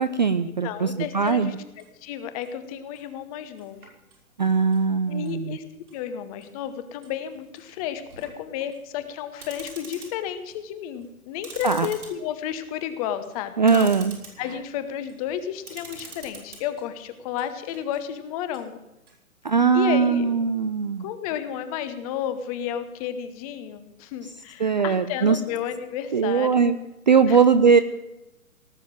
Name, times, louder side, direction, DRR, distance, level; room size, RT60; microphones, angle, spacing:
voice 1, 0.0-1.6 4.4-5.6 11.6-11.9 13.6-14.1 19.4-21.1 24.6-25.4 26.1-26.8 27.1-27.8, right 5 dB, 35° right, 11 dB, 0.4 m, -20 dB
voice 2, 0.6-3.8 5.1-5.6 5.9-13.9 14.4-18.8 19.7-20.3 21.0-26.5 27.3-27.4, left 9 dB, 25° left, 11 dB, 1.0 m, -32 dB
sound 1, 1.3-1.9 2.4-2.5 3.0-3.1 3.6-4.4 4.7-4.8 5.2-5.3 5.7-6.0 6.4-6.5 7.0-10.7 10.9-16.8 17.2-18.0 18.5-18.6 19.1-19.2, right 3 dB, 75° right, 5.5 m, -46 dB
18.0 x 7.1 x 7.5 m, 0.95 s
figure-of-eight pair, 130°, 44 cm